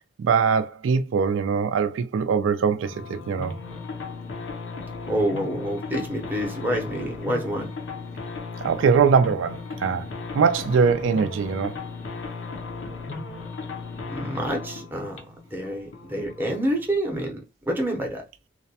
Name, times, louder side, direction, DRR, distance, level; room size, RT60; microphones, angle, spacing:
voice 1, 0.2-3.6 8.6-10.1 10.3-11.8, right 6 dB, 80° right, 0.3 m, -22 dB
sound 1, 2.8-17.0, left 4 dB, 70° left, 0.5 m, -36 dB
voice 2, 5.1-7.7 14.1-15.2 15.5-18.2, right 1 dB, 10° right, 0.6 m, -27 dB
2.4 x 2.1 x 2.7 m
head